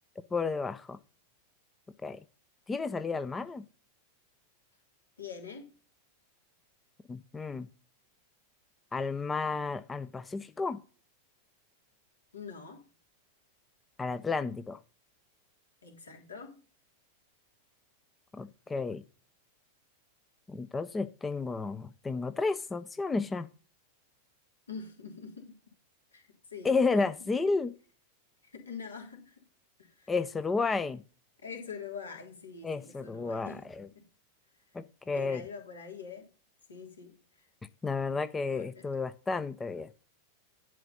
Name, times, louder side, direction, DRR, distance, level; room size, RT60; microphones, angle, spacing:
voice 1, 0.3-1.0 2.0-2.2 2.7-3.6 7.1-7.7 8.9-10.8 14.0-14.8 18.3-19.0 20.5-23.5 26.6-27.7 30.1-31.0 32.6-33.9 34.7-35.4 37.8-39.9, left 4 dB, 15° left, 0.6 m, -32 dB
voice 2, 5.2-5.7 12.3-12.8 15.8-16.6 24.7-25.6 26.1-27.1 27.4-27.5 28.4-29.4 29.8-30.1 31.4-33.7 33.9-34.1 35.1-36.3 36.7-37.5 38.5-38.8, left 6 dB, 75° left, 3.2 m, -45 dB
11.0 x 4.9 x 5.4 m
figure-of-eight pair, 90°, 0 cm